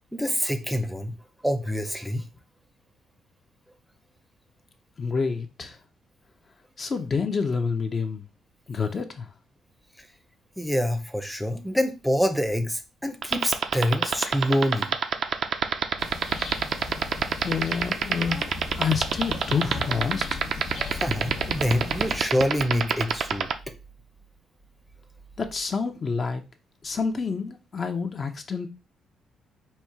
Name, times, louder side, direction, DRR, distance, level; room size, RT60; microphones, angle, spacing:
voice 1, 0.1-1.1 1.4-2.2 10.0-10.1 10.6-15.0 20.9-23.5, equal, ahead, 0.7 m, -26 dB
voice 2, 5.0-5.8 6.8-8.2 8.7-9.3 17.4-18.5 18.8-20.4 25.4-26.4 26.8-28.7, left 5 dB, 40° left, 0.7 m, -28 dB
sound 1, 13.2-23.5, right 8 dB, 65° right, 0.5 m, -23 dB
sound 2, 16.0-22.2, left 4 dB, 70° left, 1.0 m, -37 dB
4.2 x 2.4 x 4.6 m
cardioid pair, 90°, 0 cm